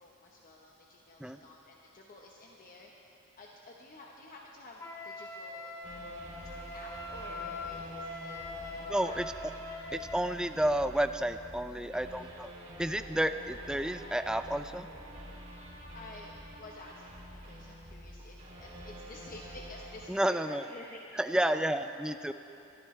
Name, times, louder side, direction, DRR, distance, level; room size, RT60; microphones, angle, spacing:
voice 1, 0.0-5.8 6.7-9.2 11.9-12.2 15.9-21.8 22.0-22.3, left 2 dB, 40° left, -1 dB, 1.1 m, -51 dB
Wind instrument woodwind instrument, 4.8-10.2, left 2 dB, 15° left, 2.1 m, -42 dB
sound 1, 5.8-20.1, equal, 30° right, 3.0 m, -47 dB
voice 2, 8.9-9.3 9.9-12.5 12.8-14.9 20.1-20.6 21.2-22.3, right 1 dB, 5° right, 10 dB, 0.4 m, -31 dB
23.5 x 14.0 x 3.3 m, 2.8 s
head